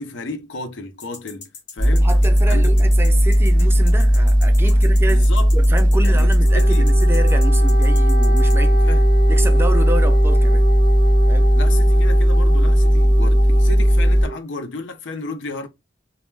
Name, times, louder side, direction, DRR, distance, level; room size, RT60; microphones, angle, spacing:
voice 1, 0.0-2.1 2.5-2.8 5.1-5.5 6.0-6.9 8.8-9.0 11.5-15.7, left 2 dB, 90° left, 0.6 m, -32 dB
sound 1, 1.0-8.5, left 5 dB, 70° left, 0.9 m, -38 dB
sound 2, 1.8-14.2, equal, 25° left, 0.6 m, -15 dB
voice 2, 2.0-8.8 9.3-10.7 11.3-11.5, right 2 dB, 15° right, 0.3 m, -29 dB
Wind instrument woodwind instrument, 6.4-14.4, right 3 dB, 60° right, 0.6 m, -29 dB
2.1 x 2.1 x 3.1 m
head